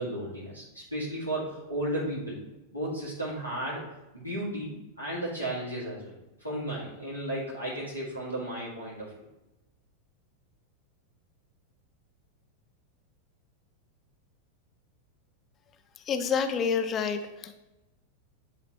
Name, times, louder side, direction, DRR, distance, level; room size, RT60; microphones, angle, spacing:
voice 1, 0.0-2.4 2.7-3.9 4.1-9.1, right 1 dB, 90° right, -9 dB, 2.4 m, -34 dB
voice 2, 16.1-17.5, left 6 dB, 30° left, 8 dB, 0.7 m, -28 dB
11.0 x 3.9 x 3.1 m, 1.0 s
figure-of-eight pair, 90°, 0 cm